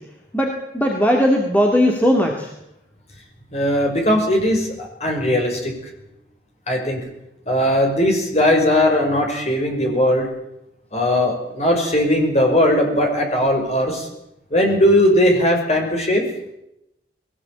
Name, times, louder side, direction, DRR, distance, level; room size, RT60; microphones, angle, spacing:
voice 1, 0.3-2.5, equal, 10° left, 1 dB, 2.2 m, -18 dB
voice 2, 3.5-5.7 6.7-7.0 7.5-10.3 10.9-14.1 14.5-16.2, left 1 dB, 35° left, 2 dB, 5.7 m, -18 dB
21.0 x 17.5 x 8.6 m, 0.84 s
head